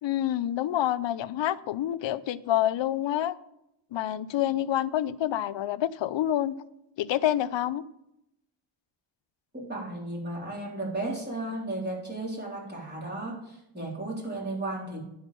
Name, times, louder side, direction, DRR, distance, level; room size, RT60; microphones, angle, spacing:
voice 1, 0.0-3.3 3.9-6.5 7.0-7.8, left 12 dB, 65° left, 15 dB, 0.6 m, -27 dB
voice 2, 9.5-15.0, right 2 dB, 20° right, -3 dB, 3.7 m, -34 dB
11.0 x 4.8 x 6.8 m, 0.83 s
cardioid pair, 95°, 47 cm